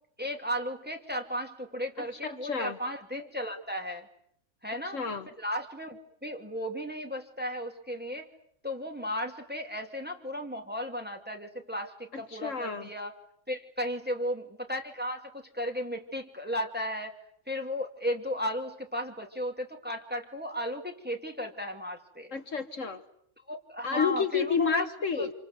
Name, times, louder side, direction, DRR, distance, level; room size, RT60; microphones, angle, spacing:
voice 1, 0.2-4.1 4.6-5.0 5.3-8.3 8.6-13.1 13.5-17.1 17.5-22.3 23.5-24.9 25.2-25.3, equal, 5° right, 3 dB, 2.6 m, -35 dB
voice 2, 2.2-2.8 4.9-5.3 12.1-12.9 22.3-23.0 23.8-25.3, left 5 dB, 60° left, 8 dB, 1.7 m, -30 dB
27.5 x 26.5 x 8.1 m, 0.69 s
omnidirectional pair, 1.5 m